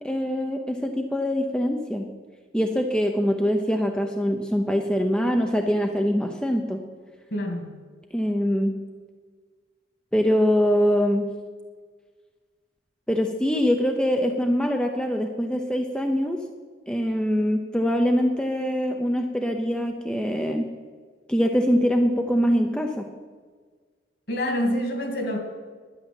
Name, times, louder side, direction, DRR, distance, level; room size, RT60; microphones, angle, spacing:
voice 1, 0.0-2.1 2.5-6.8 8.1-8.8 10.1-11.3 13.1-16.4 16.9-20.7 21.3-23.1, equal, 5° left, 3 dB, 0.7 m, -23 dB
voice 2, 7.3-7.7 24.3-25.4, equal, 55° left, 4 dB, 2.5 m, -26 dB
11.5 x 10.0 x 7.7 m, 1.5 s
head